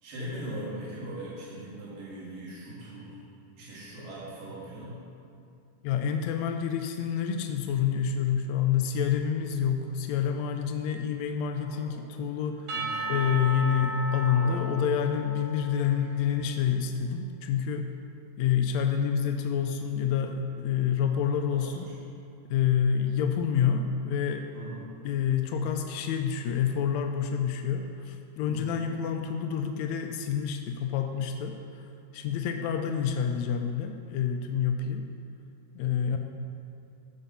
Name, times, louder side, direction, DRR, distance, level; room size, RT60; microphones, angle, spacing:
voice 1, 0.0-3.2 3.6-5.0 12.7-13.0 21.5-22.0 24.5-24.8 28.4-28.8, right 1 dB, 85° right, -8 dB, 3.6 m, -40 dB
voice 2, 5.8-12.7 13.1-17.9 18.4-21.9 22.5-24.5 25.0-31.6 32.1-35.0 35.7-36.2, left 8 dB, 85° left, 5 dB, 1.5 m, -28 dB
sound 1, 7.7-8.0 8.9-9.3 10.2-10.6 11.2-12.0 12.4-13.3 13.6-14.6, equal, 70° left, 4.4 m, -49 dB
Percussion / Church bell, 12.7-16.3, right 1 dB, 60° right, 2.3 m, -35 dB
15.0 x 5.0 x 5.7 m, 2.5 s
omnidirectional pair, 3.8 m